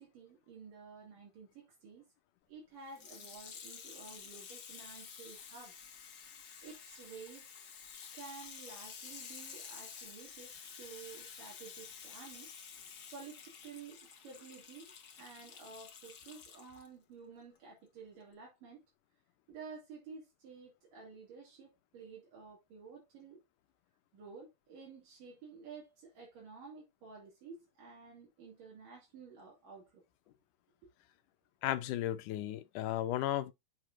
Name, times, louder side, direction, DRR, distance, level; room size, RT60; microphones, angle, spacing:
voice 1, 0.0-2.1 2.5-5.8 6.6-7.5 8.1-10.5 10.8-12.5 13.1-14.9 15.1-18.8 19.5-23.4 24.1-30.0, right 5 dB, 75° right, 4.3 m, -52 dB
Water tap faucet / Sink (filling or washing), 2.9-16.9 17.5-17.6, left 7 dB, 55° left, 1.2 m, -51 dB
voice 2, 31.6-33.5, left 13 dB, 75° left, 2.3 m, -34 dB
7.7 x 6.8 x 2.7 m
omnidirectional pair, 3.8 m